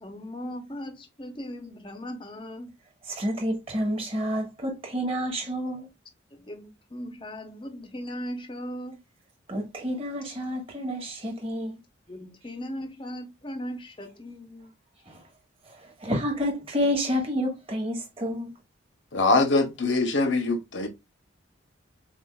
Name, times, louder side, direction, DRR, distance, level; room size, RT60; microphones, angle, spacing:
voice 1, 0.0-2.7 6.3-9.0 12.1-14.7, equal, 25° left, 0.7 m, -38 dB
voice 2, 3.1-5.9 9.5-11.7 15.1-15.2 15.8-18.5, equal, 30° right, 1.3 m, -29 dB
voice 3, 19.1-20.9, left 3 dB, 65° left, 0.8 m, -23 dB
7.2 x 2.4 x 2.3 m
head